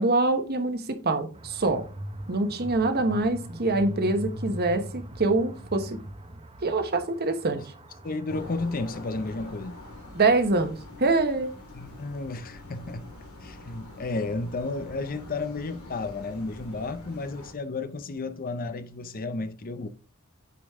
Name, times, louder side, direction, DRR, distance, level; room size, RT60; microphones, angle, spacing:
voice 1, 0.0-1.8 2.3-6.0 6.6-7.6 10.1-11.5, right 2 dB, 50° right, 1.2 m, -25 dB
sound 1, 1.3-15.2, equal, 30° right, 0.9 m, -43 dB
voice 2, 8.0-9.8 11.7-13.1 13.4-19.9, left 3 dB, 40° left, 0.6 m, -32 dB
sound 2, 8.3-17.5, left 2 dB, 90° left, 3.4 m, -45 dB
8.6 x 5.2 x 3.6 m
head